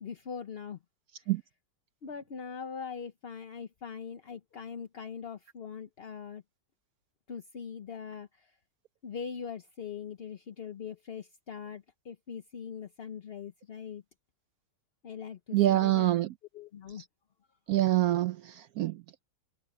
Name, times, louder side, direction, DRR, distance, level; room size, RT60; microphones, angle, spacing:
voice 1, 0.0-0.8 1.2-1.3 2.0-6.4 7.3-8.6 9.0-14.0 15.0-16.1 16.5-17.0, left 6 dB, 45° left, 0.8 m, -41 dB
voice 2, 15.5-16.3 17.7-19.0, right 15 dB, 70° right, 0.9 m, -26 dB
omnidirectional pair, 1.9 m